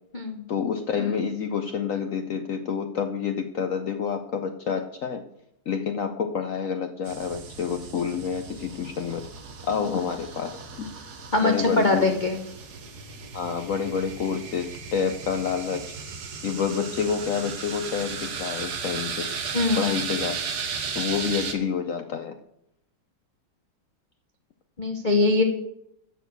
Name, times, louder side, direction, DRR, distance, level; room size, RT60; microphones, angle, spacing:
voice 1, 0.5-5.3 5.7-9.2 9.7-10.9 11.4-12.1 13.3-15.9 16.4-19.3 19.8-20.3 20.9-22.4, left 6 dB, 75° left, 8 dB, 0.7 m, -28 dB
sound 1, 7.1-21.6, right 6 dB, 55° right, 1.5 m, -35 dB
voice 2, 11.3-12.4 19.5-19.8 24.8-25.4, left 3 dB, 35° left, 4 dB, 0.7 m, -22 dB
12.5 x 4.5 x 8.1 m, 0.77 s
omnidirectional pair, 2.2 m